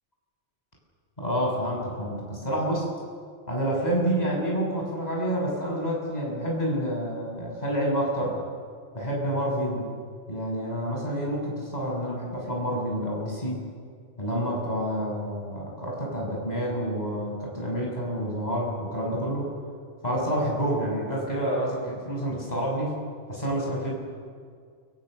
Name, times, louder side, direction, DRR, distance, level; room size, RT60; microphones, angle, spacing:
voice 1, 1.2-2.8 3.5-8.4 8.9-9.8 10.3-13.6 14.2-19.5 20.0-22.9 23.3-23.9, equal, 35° left, -2 dB, 7.3 m, -28 dB
28.5 x 24.5 x 6.7 m, 2.2 s
omnidirectional pair, 1.2 m